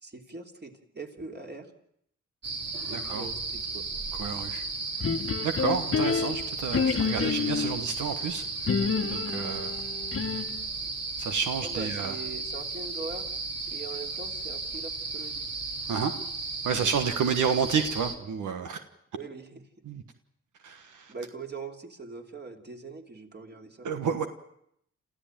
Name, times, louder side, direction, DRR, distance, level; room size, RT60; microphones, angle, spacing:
voice 1, 0.0-1.7 2.9-3.9 11.6-13.3 13.7-15.5 19.1-19.6 21.1-23.9, right 3 dB, 35° right, 3 dB, 3.2 m, -41 dB
sound 1, 2.4-18.1, right 3 dB, 55° right, 3.4 m, -35 dB
voice 2, 2.8-3.3 4.1-4.6 5.4-8.4 8.7-8.8 9.1-9.8 11.2-12.1 15.9-16.1 16.6-18.8 19.8-20.0 20.6-21.1 23.8-24.3, right 6 dB, 85° right, 7 dB, 1.4 m, -30 dB
sound 2, 5.0-7.8 8.7-10.6, left 6 dB, 45° left, 1.3 m, -28 dB
28.0 x 14.5 x 9.1 m, 0.74 s
cardioid pair, 65°, 30 cm